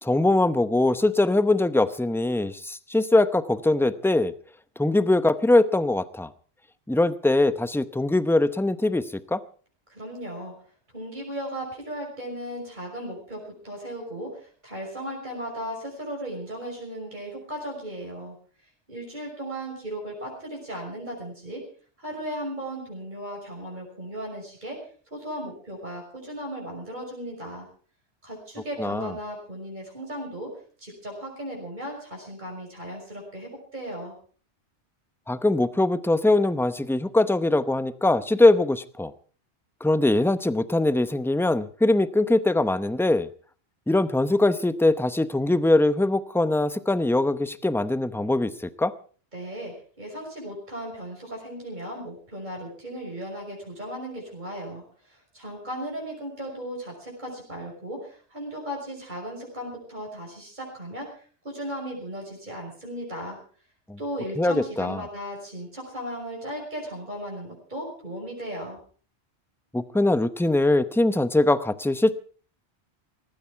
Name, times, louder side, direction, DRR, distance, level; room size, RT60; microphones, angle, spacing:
voice 1, 0.0-4.3 4.8-6.3 6.9-9.4 28.8-29.1 35.3-39.1 39.8-43.3 43.9-48.9 63.9-64.0 64.4-65.0 69.7-72.1, left 2 dB, 5° left, 13 dB, 0.6 m, -22 dB
voice 2, 9.9-10.5 10.9-18.3 18.9-21.7 22.0-24.8 25.1-27.7 28.2-30.5 30.8-34.1 49.3-63.4 64.0-68.8, equal, 45° right, -1 dB, 5.9 m, -36 dB
18.5 x 15.5 x 4.6 m, 0.42 s
omnidirectional pair, 1.1 m